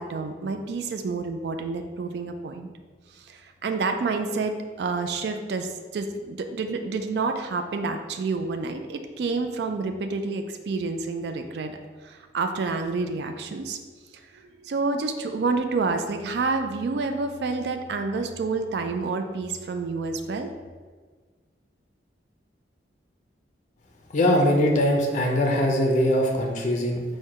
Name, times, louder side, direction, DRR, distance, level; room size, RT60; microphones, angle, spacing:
voice 1, 0.0-2.7 3.1-11.7 12.0-13.8 14.3-20.5, right 4 dB, 65° right, 6 dB, 0.3 m, -29 dB
voice 2, 24.1-27.0, equal, 40° left, 1 dB, 0.4 m, -21 dB
4.4 x 2.2 x 4.7 m, 1.5 s
head